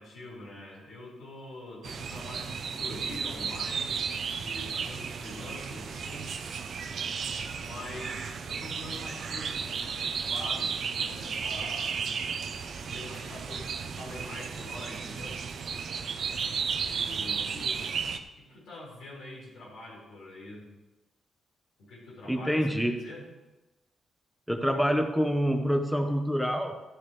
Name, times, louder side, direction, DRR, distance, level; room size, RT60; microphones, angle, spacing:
voice 1, 0.0-6.3 7.6-11.9 12.8-15.4 16.9-18.0 18.4-20.7 21.8-23.2, left 1 dB, 90° left, -6 dB, 4.5 m, -44 dB
sound 1, 1.8-18.2, right 6 dB, 65° right, 0.9 m, -34 dB
voice 2, 22.3-23.0 24.5-26.8, equal, ahead, 6 dB, 1.4 m, -26 dB
14.0 x 11.0 x 3.5 m, 1.0 s
cardioid pair, 85°, 0 cm